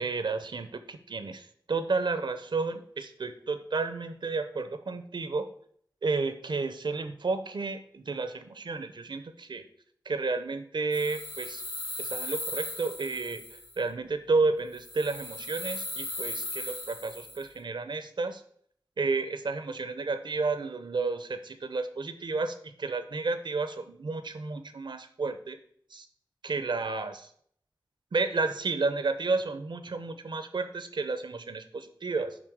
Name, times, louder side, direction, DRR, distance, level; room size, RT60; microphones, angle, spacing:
voice 1, 0.0-5.5 6.0-9.6 10.1-11.6 12.0-18.4 19.0-25.6 25.9-26.1 26.4-27.3 28.1-32.4, right 3 dB, 85° right, 11 dB, 0.7 m, -31 dB
sound 1, 10.9-13.8 14.7-17.5, left 2 dB, 60° left, 1.9 m, -38 dB
7.5 x 5.1 x 4.8 m, 0.63 s
wide cardioid pair, 70°, 8 cm